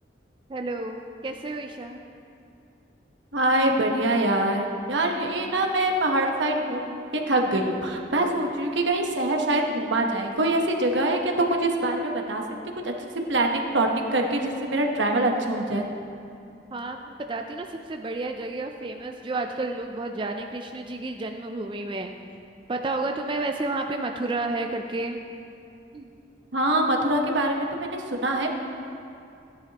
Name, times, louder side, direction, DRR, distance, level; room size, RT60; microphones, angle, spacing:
voice 1, 0.5-2.0 16.7-22.1 22.7-25.2 25.9-26.1, right 2 dB, 25° right, 4 dB, 0.4 m, -31 dB
voice 2, 3.3-12.4 12.8-12.9 13.3-15.8 26.5-28.5, right 1 dB, 80° right, 2 dB, 1.1 m, -24 dB
15.5 x 10.0 x 2.9 m, 2.6 s
head